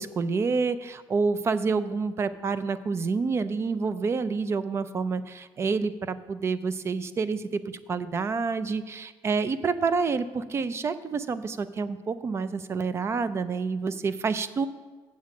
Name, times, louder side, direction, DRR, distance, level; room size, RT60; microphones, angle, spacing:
voice 1, 0.0-14.7, right 4 dB, 25° right, 14 dB, 0.4 m, -28 dB
7.4 x 7.4 x 6.0 m, 1.3 s
cardioid pair, 160°, 10 cm